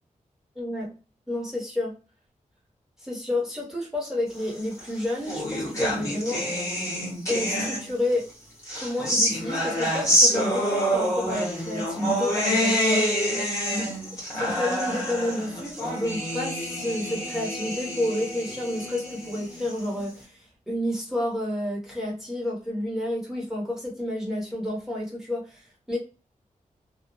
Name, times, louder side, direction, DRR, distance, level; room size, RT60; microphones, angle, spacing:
voice 1, 0.6-0.9 1.3-1.9 3.0-6.4 7.3-8.3 8.8-13.0 13.7-13.9 14.4-25.6 25.9-26.0, left 1 dB, 5° right, -5 dB, 0.9 m, -30 dB
sound 1, 4.7-8.1 8.6-20.1, equal, 25° left, 1.1 m, -27 dB
2.4 x 2.0 x 2.5 m, 0.33 s
wide cardioid pair, 150°, 14 cm